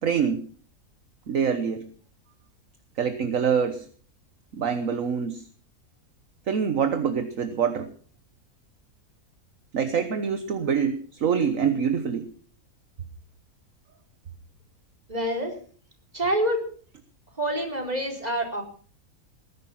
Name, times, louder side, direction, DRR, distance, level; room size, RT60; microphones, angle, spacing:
voice 1, 0.0-0.4 1.3-1.8 3.0-3.9 4.5-5.5 6.5-7.9 9.7-12.3, right 7 dB, 60° right, 9 dB, 1.5 m, -25 dB
voice 2, 15.1-15.6 16.1-16.6 17.4-18.6, right 1 dB, 25° right, 2 dB, 4.5 m, -26 dB
19.5 x 11.5 x 5.8 m, 0.43 s
omnidirectional pair, 1.6 m